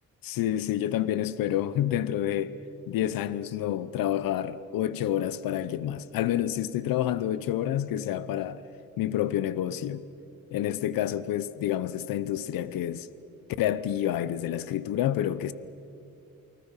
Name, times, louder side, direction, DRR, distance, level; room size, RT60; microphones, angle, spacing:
voice 1, 0.2-2.5 2.9-8.6 9.0-10.0 10.5-13.1 13.6-15.5, left 11 dB, 85° left, 0.8 m, -28 dB
29.0 x 19.5 x 5.7 m
cardioid pair, 85°, 33 cm